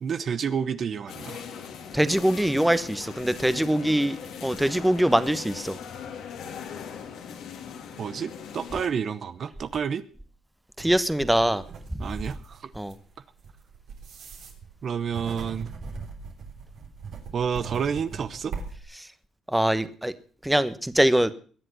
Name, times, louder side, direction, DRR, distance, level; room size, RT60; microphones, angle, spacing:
voice 1, 0.0-1.4 8.0-10.0 12.0-12.7 14.8-15.7 17.3-18.5, right 7 dB, 55° right, 13 dB, 0.8 m, -29 dB
sound 1, 1.1-8.9, left 7 dB, 80° left, 2.5 m, -40 dB
voice 2, 1.9-5.8 10.8-11.6 12.8-12.9 19.5-20.1 20.4-21.3, right 1 dB, 5° right, 13 dB, 1.1 m, -23 dB
sound 2, 10.8-18.8, right 5 dB, 70° right, 3.6 m, -40 dB
21.5 x 7.8 x 6.2 m, 0.43 s
cardioid pair, 80°, 0 cm